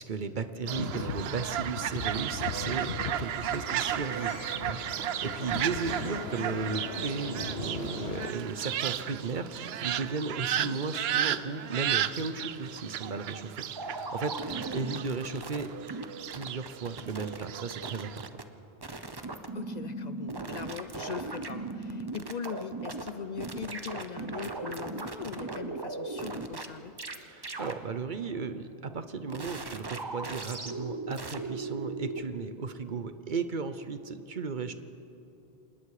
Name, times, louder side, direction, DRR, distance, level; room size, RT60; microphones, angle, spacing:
voice 1, 0.0-2.9 3.2-4.3 4.6-15.7 16.3-18.3 27.2-34.7, right 4 dB, 55° right, 11 dB, 1.0 m, -35 dB
voice 2, 0.6-1.2 5.6-6.1 10.5-10.8 14.7-14.8 15.1-15.2 19.5-26.9, left 7 dB, 50° left, 12 dB, 0.6 m, -41 dB
sound 1, 0.7-8.3, left 9 dB, 80° left, 0.9 m, -39 dB
Fowl, 0.7-18.3, right 10 dB, 80° right, 0.9 m, -34 dB
sound 2, 13.8-16.0 16.3-17.5 17.7-18.4 18.8-23.1 23.4-26.7 27.0-27.2 27.4-27.7 29.3-32.2, right 3 dB, 25° right, 0.9 m, -37 dB
26.0 x 20.0 x 4.9 m, 2.8 s
omnidirectional pair, 1.0 m